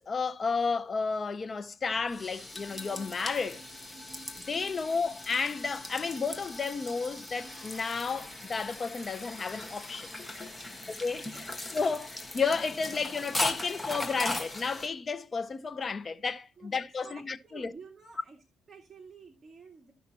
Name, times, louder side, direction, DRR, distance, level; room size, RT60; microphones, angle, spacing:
voice 1, 0.1-3.6 4.5-10.1 10.9-11.3 11.7-17.7, left 4 dB, 35° left, 0.7 m, -32 dB
sound 1, 1.9-14.9, left 2 dB, 10° left, 1.6 m, -39 dB
voice 2, 10.7-11.6 16.6-18.4 18.7-19.9, right 5 dB, 30° right, 2.1 m, -52 dB
14.5 x 5.8 x 3.0 m
cardioid pair, 90°, 0 cm